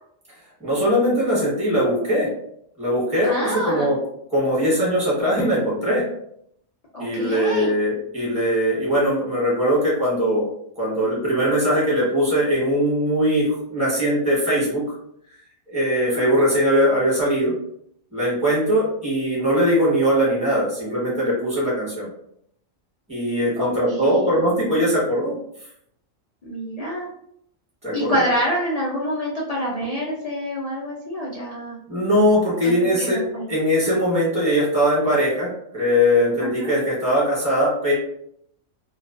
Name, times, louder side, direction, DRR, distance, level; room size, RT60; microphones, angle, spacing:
voice 1, 0.6-2.3 2.8-4.0 4.3-6.0 7.0-10.5 10.8-15.0 15.7-17.5 18.1-22.1 23.1-25.3 27.8-28.2 31.9-33.2 33.5-37.9, equal, 5° right, -7 dB, 1.0 m, -20 dB
voice 2, 3.2-3.9 6.9-7.7 16.1-16.5 23.6-24.4 26.4-27.1 27.9-31.8 32.6-33.5 36.4-36.7, equal, 80° left, -6 dB, 0.3 m, -27 dB
2.3 x 2.3 x 2.4 m, 0.71 s
omnidirectional pair, 1.4 m